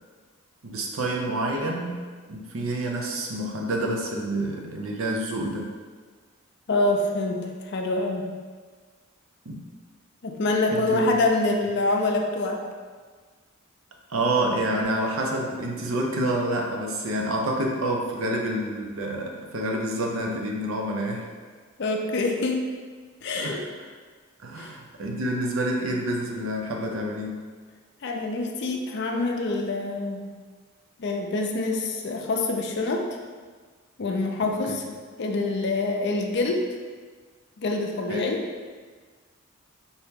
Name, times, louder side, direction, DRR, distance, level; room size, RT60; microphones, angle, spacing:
voice 1, 0.6-2.0 2.3-5.8 9.5-9.6 10.7-11.2 14.1-21.3 23.3-23.9 24.4-27.4 34.4-34.8 38.1-38.3, right 1 dB, 75° right, 1 dB, 0.6 m, -28 dB
voice 2, 6.7-8.3 10.2-12.6 21.8-22.7 23.2-23.6 24.6-24.7 28.0-30.3 31.0-33.0 34.0-34.8 35.2-36.7 37.6-38.4, left 2 dB, 50° left, 2 dB, 0.4 m, -26 dB
4.0 x 2.9 x 3.6 m, 1.5 s
head